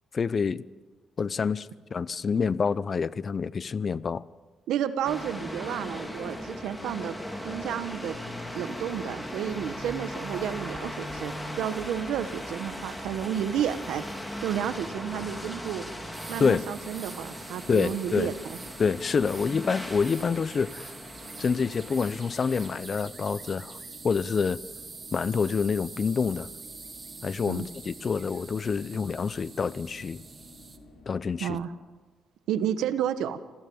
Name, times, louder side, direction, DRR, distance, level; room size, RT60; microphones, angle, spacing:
voice 1, 0.1-0.6 1.2-4.2 16.4-16.6 17.7-18.3 18.8-20.9 21.4-23.8 24.0-24.6 25.1-26.5 27.2-30.2 31.1-31.6, left 5 dB, 40° left, 0.7 m, -27 dB
voice 2, 4.7-7.1 7.4-8.2 8.5-14.0 14.4-15.8 16.3-18.6 27.5-27.7 31.4-31.7 32.5-33.4, right 9 dB, 85° right, 1.4 m, -31 dB
sound 1, 5.0-22.7, equal, 10° left, 3.4 m, -38 dB
sound 2, 16.1-30.8, right 4 dB, 30° right, 2.1 m, -45 dB
sound 3, 18.4-31.7, left 2 dB, 60° left, 6.6 m, -52 dB
26.5 x 16.0 x 8.8 m
cardioid pair, 90°, 0 cm